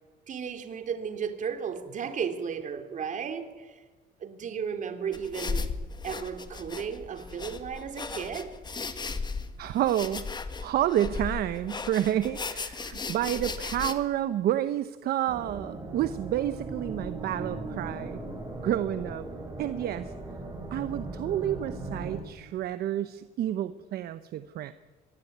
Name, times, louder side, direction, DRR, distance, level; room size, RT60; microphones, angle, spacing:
voice 1, 0.3-3.8 4.2-5.8 6.0-8.5, right 7 dB, 50° right, 3.1 m, -34 dB
sound 1, 5.1-13.9, left 4 dB, 25° left, 1.9 m, -36 dB
voice 2, 9.6-10.3 10.6-18.2 18.6-19.2 19.6-20.1 20.7-24.7, right 12 dB, 65° right, 0.9 m, -29 dB
sound 2, 15.3-22.2, right 2 dB, 20° right, 7.5 m, -38 dB
24.0 x 19.5 x 9.5 m
cardioid pair, 110°, 17 cm